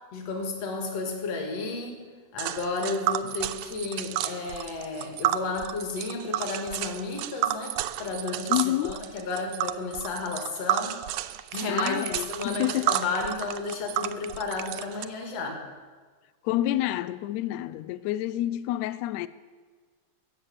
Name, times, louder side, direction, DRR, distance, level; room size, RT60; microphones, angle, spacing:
voice 1, 0.1-2.0 2.3-12.0 12.3-15.6, left 3 dB, 60° left, 2.9 m, -32 dB
Tick, 2.4-15.0, right 12 dB, 85° right, 1.4 m, -31 dB
voice 2, 8.5-9.0 11.7-12.9 16.4-19.3, left 14 dB, 80° left, 1.7 m, -28 dB
15.0 x 7.5 x 8.4 m
omnidirectional pair, 3.4 m